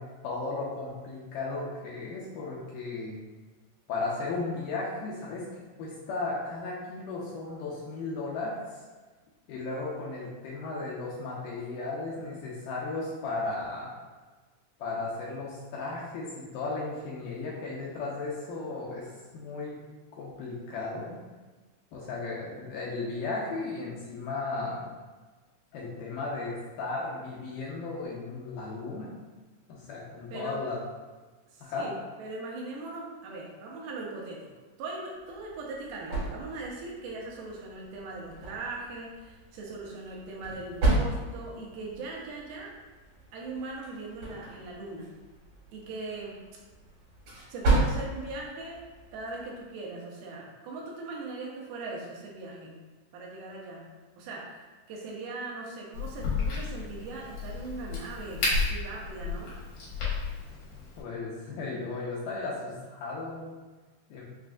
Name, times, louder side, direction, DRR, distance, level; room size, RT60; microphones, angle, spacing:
voice 1, 0.0-3.2 3.9-8.8 9.5-13.9 14.8-19.8 20.2-21.2 21.9-24.9 25.7-29.1 29.7-30.8 31.6-31.9 61.0-63.6 64.1-64.2, left 3 dB, 80° left, -5 dB, 2.0 m, -35 dB
voice 2, 30.3-30.6 31.5-34.5 34.8-42.7 43.3-45.1 45.7-46.4 47.5-48.8 49.1-52.7 53.1-59.5, right 3 dB, 90° right, -2 dB, 2.6 m, -40 dB
sound 1, 35.2-49.7, right 2 dB, 60° right, 2.8 m, -34 dB
Crack, 55.9-61.0, left 4 dB, 65° left, 1.6 m, -32 dB
6.0 x 2.5 x 2.3 m, 1.3 s
omnidirectional pair, 4.2 m